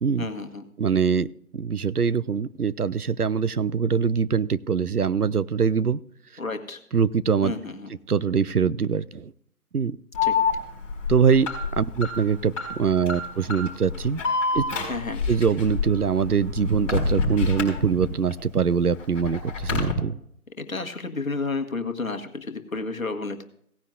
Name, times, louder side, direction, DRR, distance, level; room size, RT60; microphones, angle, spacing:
voice 1, 0.2-0.6 6.4-6.8 7.4-7.9 10.2-10.3 14.9-15.2 20.6-23.4, left 3 dB, 65° left, 6 dB, 1.5 m, -31 dB
voice 2, 0.8-1.3 1.5-6.0 6.9-7.5 8.1-9.3 9.7-10.0 11.1-11.5 11.8-14.2 14.5-14.6 15.3-20.2, right 6 dB, 85° right, 16 dB, 0.7 m, -23 dB
Alarm, 10.1-18.3 18.7-19.9, left 4 dB, 20° left, 4.4 m, -27 dB
17.5 x 10.0 x 2.4 m, 0.66 s
figure-of-eight pair, 150°, 44 cm